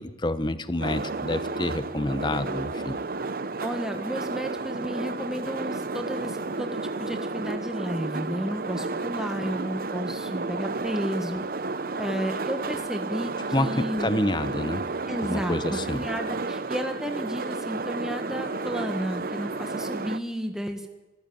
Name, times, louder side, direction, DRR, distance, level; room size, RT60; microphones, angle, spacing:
voice 1, 0.0-3.0 13.5-14.9 15.2-16.1, left 1 dB, 25° left, 13 dB, 0.9 m, -28 dB
sound 1, 0.8-20.2, right 3 dB, 55° right, 0.7 m, -32 dB
voice 2, 3.6-11.4 12.0-14.1 15.1-20.9, equal, 5° right, 4 dB, 1.5 m, -32 dB
26.5 x 14.0 x 9.3 m, 1.1 s
head